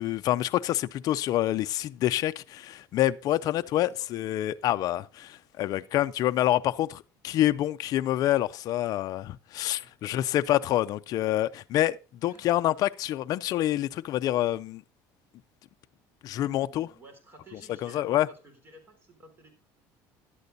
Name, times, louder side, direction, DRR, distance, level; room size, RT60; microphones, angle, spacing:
voice 1, 0.0-12.0 12.2-14.8 16.2-16.9 17.8-18.3, left 13 dB, 50° left, 0.5 m, -27 dB
voice 2, 3.4-4.1 9.8-10.4 12.2-12.5 16.6-19.5, right 2 dB, 30° right, 3.7 m, -54 dB
11.5 x 8.3 x 3.9 m
cardioid pair, 130°, 8 cm